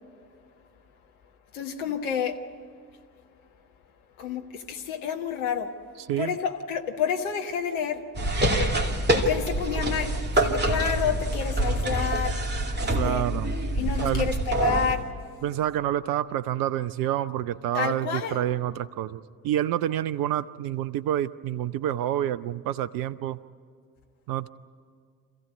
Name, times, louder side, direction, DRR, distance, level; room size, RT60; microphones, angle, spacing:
voice 1, 1.5-2.4 4.2-5.7 6.2-8.0 9.1-12.4 12.8-13.2 13.8-15.1 17.7-18.4, left 7 dB, 70° left, 1.5 m, -29 dB
sound 1, 8.1-14.9, right 1 dB, 20° right, 2.5 m, -26 dB
voice 2, 12.9-13.5 14.0-14.3 15.4-23.4 24.3-24.5, right 12 dB, 50° right, 0.7 m, -28 dB
26.0 x 15.5 x 9.5 m
figure-of-eight pair, 50°, 45 cm